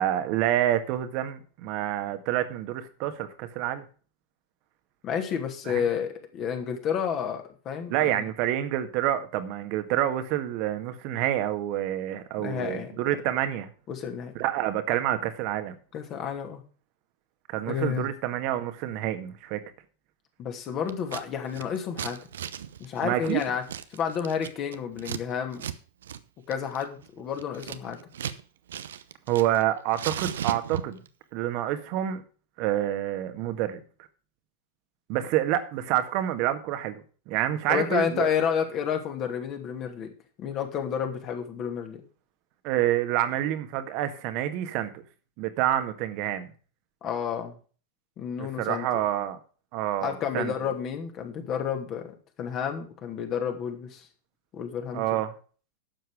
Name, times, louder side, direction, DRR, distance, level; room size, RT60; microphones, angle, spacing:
voice 1, 0.0-3.8 5.6-5.8 7.9-13.7 14.4-15.7 17.5-19.6 23.0-23.4 29.3-31.0 31.3-32.2 32.6-33.8 35.1-38.3 42.6-44.9 45.4-46.5 48.4-49.4 49.7-50.5 54.9-55.3, right 12 dB, 45° right, 9 dB, 1.7 m, -28 dB
voice 2, 5.0-8.2 12.4-12.9 13.9-14.3 15.9-16.6 17.7-18.1 20.4-22.2 22.8-23.6 23.9-25.6 26.5-28.0 37.7-40.1 40.4-42.0 47.0-47.6 48.2-48.9 50.0-52.1 52.4-54.1 54.5-55.2, left 7 dB, 35° left, 4 dB, 2.7 m, -30 dB
Scissors, 20.9-21.2 21.5-25.2 25.5-25.8 26.0-26.2 26.5-28.4 28.7-29.6 29.9-31.1, right 9 dB, 65° right, 0.8 m, -36 dB
12.0 x 7.8 x 4.9 m, 0.38 s
figure-of-eight pair, 90°, 0 cm